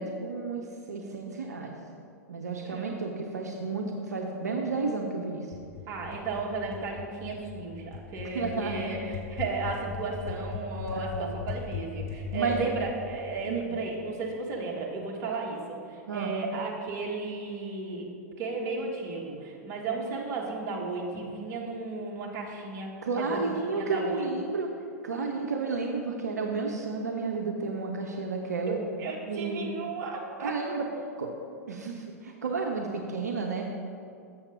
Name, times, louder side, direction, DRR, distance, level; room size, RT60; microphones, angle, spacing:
voice 1, 0.0-1.7 2.3-5.5 8.3-8.9 10.9-11.4 12.3-12.7 13.5-13.8 16.1-16.4 23.0-24.7 25.0-28.8 29.2-29.7 30.4-30.9 31.2-31.3 31.7-33.6, right 4 dB, 80° right, 2 dB, 0.7 m, -32 dB
voice 2, 2.6-3.0 5.9-18.1 18.4-24.3 25.1-25.5 28.7-30.5, right 3 dB, 40° right, -1 dB, 1.6 m, -34 dB
sound 1, 5.5-14.2, left 6 dB, 45° left, 2.2 m, -40 dB
7.2 x 6.9 x 5.1 m, 2.5 s
figure-of-eight pair, 100°, 9 cm